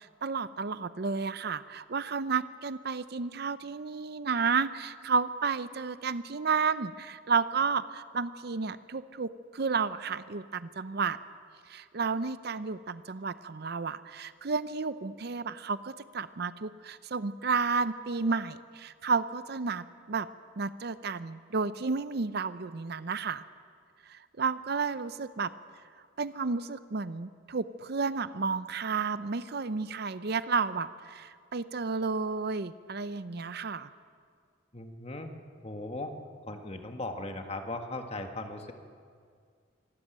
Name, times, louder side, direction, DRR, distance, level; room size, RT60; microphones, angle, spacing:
voice 1, 0.0-11.2 11.7-20.3 20.6-23.4 24.1-25.5 26.2-33.9, right 5 dB, 55° right, 14 dB, 0.6 m, -32 dB
voice 2, 34.7-35.3 35.6-36.1 36.5-38.7, left 2 dB, 30° left, 5 dB, 1.6 m, -38 dB
25.5 x 13.0 x 9.0 m, 2.2 s
head